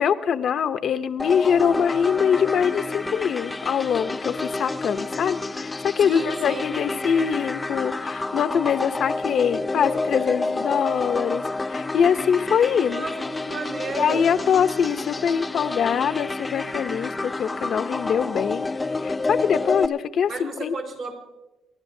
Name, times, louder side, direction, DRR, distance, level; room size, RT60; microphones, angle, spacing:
voice 1, 0.0-13.1 13.9-18.6 19.0-20.7, left 7 dB, 65° left, 10 dB, 0.6 m, -23 dB
sound 1, 1.2-19.9, left 3 dB, 20° left, 0.5 m, -29 dB
voice 2, 6.0-6.8 12.9-14.3 20.3-21.1, right 3 dB, 60° right, 1 dB, 4.5 m, -33 dB
28.5 x 12.0 x 2.7 m, 1.0 s
cardioid pair, 90°, 0 cm